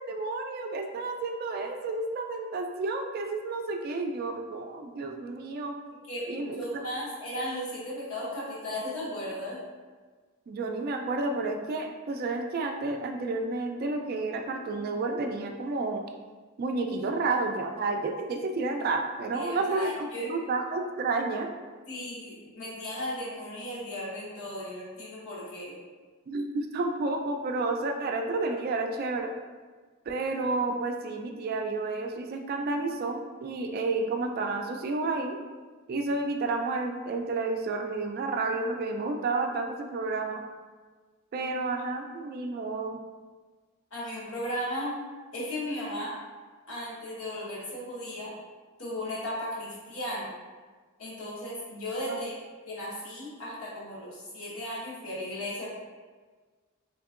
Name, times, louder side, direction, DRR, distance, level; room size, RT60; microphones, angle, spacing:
voice 1, 0.0-5.7 6.3-6.9 10.5-16.0 16.6-21.5 26.3-29.3 30.1-35.4 35.9-40.5 41.3-43.0 52.0-52.3, right 3 dB, 45° right, 4 dB, 0.3 m, -31 dB
voice 2, 6.1-9.6 19.3-20.3 21.9-25.8 43.9-45.0 45.3-46.1 46.7-48.3 48.8-50.3 51.0-52.4 52.6-55.7, equal, 80° left, -7 dB, 1.1 m, -36 dB
3.5 x 2.9 x 2.4 m, 1.4 s
head